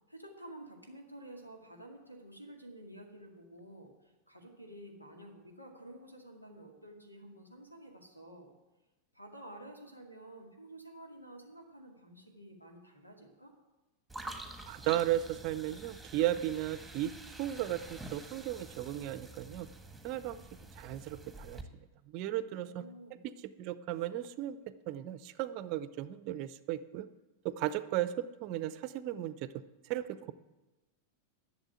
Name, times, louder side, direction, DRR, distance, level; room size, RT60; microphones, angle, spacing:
voice 1, 0.1-8.5 9.1-13.5 22.4-23.3, right 1 dB, 85° left, 2 dB, 2.1 m, -51 dB
sound 1, 14.1-21.6, right 2 dB, ahead, 1.5 m, -48 dB
voice 2, 14.7-19.7 20.0-20.4 20.8-21.6 22.1-22.8 23.1-24.6 24.9-27.1 27.4-29.6 29.9-30.3, right 13 dB, 40° right, 14 dB, 0.6 m, -35 dB
11.5 x 7.1 x 9.0 m, 1.1 s
figure-of-eight pair, 90°, 0 cm